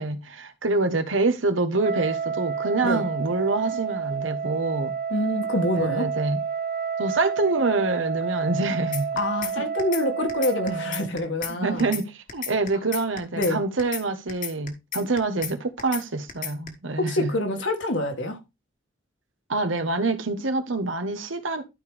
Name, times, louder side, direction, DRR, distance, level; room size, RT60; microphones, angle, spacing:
voice 1, 0.0-4.9 5.8-6.4 7.0-9.1 9.6-9.7 11.5-17.3 19.5-21.6, right 3 dB, 90° right, 1.3 m, -26 dB
Wind instrument woodwind instrument, 1.7-11.1, right 7 dB, 40° right, 0.7 m, -30 dB
voice 2, 5.1-6.1 9.2-12.0 13.4-13.6 17.0-18.4, left 1 dB, 75° left, 2.0 m, -26 dB
sound 1, 8.9-9.5 9.8-10.0 10.3-11.5 11.8-12.0 12.3-13.5 13.8-14.0 14.3-15.5 15.8-16.0 16.3-16.7, left 8 dB, 45° left, 1.4 m, -32 dB
12.0 x 5.0 x 3.4 m
head